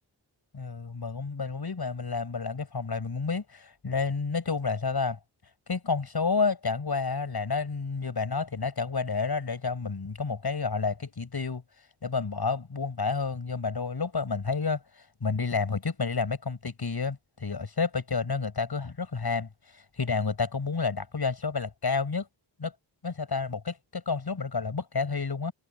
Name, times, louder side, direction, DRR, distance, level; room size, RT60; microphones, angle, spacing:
voice 1, 0.5-5.2 5.7-11.6 12.0-22.3 22.6-22.7 23.0-25.5, left 4 dB, 55° left, 7.3 m, -30 dB
wide cardioid pair, 80°, 46 cm